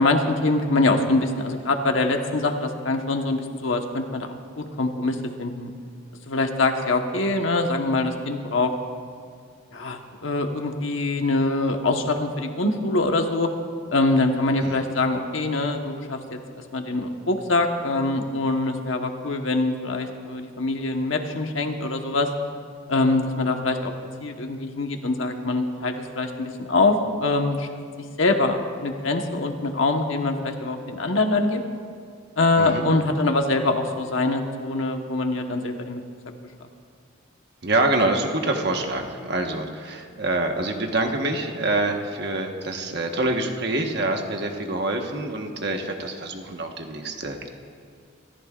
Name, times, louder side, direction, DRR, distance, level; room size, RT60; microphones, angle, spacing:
voice 1, 0.0-4.3 4.6-5.7 6.3-8.7 9.7-13.5 13.9-16.2 16.7-22.3 22.9-23.9 24.2-27.7 28.2-31.6 32.4-36.0, left 2 dB, 75° left, 4 dB, 1.2 m, -24 dB
voice 2, 14.6-14.9 32.6-32.9 37.6-47.5, right 2 dB, 55° right, 3 dB, 1.3 m, -26 dB
26.5 x 14.0 x 2.5 m, 2.2 s
head